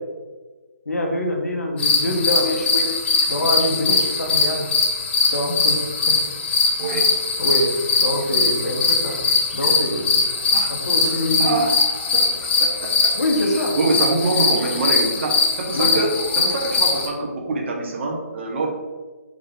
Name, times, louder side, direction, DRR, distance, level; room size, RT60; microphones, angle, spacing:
voice 1, 0.9-2.9 3.3-4.6 5.3-5.8 6.1-6.2 7.4-7.7 8.0-9.2 9.5-10.2 10.7-11.5 13.1-13.7 15.7-16.0, left 1 dB, 90° left, 1 dB, 1.0 m, -24 dB
sound 1, 1.8-17.1, left 4 dB, 45° left, 0.9 m, -21 dB
voice 2, 11.4-11.7 12.1-12.9 13.6-18.7, right 2 dB, 50° right, 0 dB, 1.0 m, -25 dB
3.8 x 3.6 x 3.5 m, 1.3 s
hypercardioid pair, 145°, 8 cm